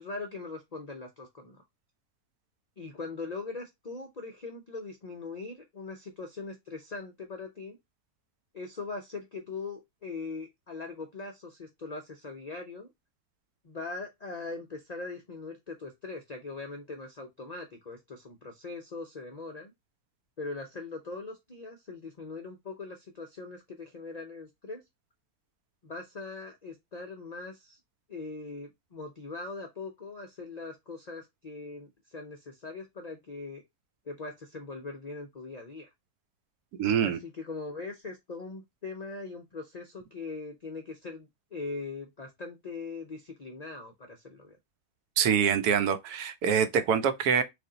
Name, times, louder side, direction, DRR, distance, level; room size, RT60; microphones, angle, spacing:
voice 1, 0.0-1.6 2.8-7.8 8.5-12.9 13.6-19.7 20.4-24.8 25.8-27.8 28.1-33.6 34.1-35.9 37.0-44.6, left 3 dB, 65° left, 0.4 m, -41 dB
voice 2, 36.8-37.2 45.2-47.4, right 7 dB, 90° right, 1.1 m, -25 dB
3.4 x 2.6 x 3.7 m
omnidirectional pair, 1.6 m